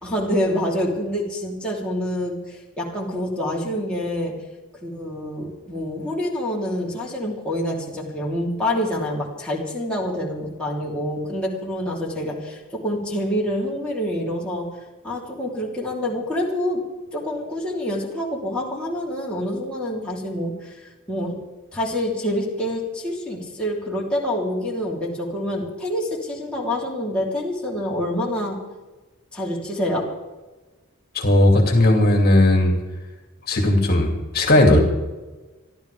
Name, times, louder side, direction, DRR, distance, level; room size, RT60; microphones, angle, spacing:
voice 1, 0.0-4.4 4.8-14.8 15.0-21.4 21.7-28.6 29.3-30.1, left 1 dB, 5° left, -5 dB, 3.5 m, -27 dB
voice 2, 31.1-32.8 33.5-34.8, left 1 dB, 45° left, 1 dB, 2.5 m, -16 dB
28.5 x 11.5 x 3.5 m, 1.2 s
head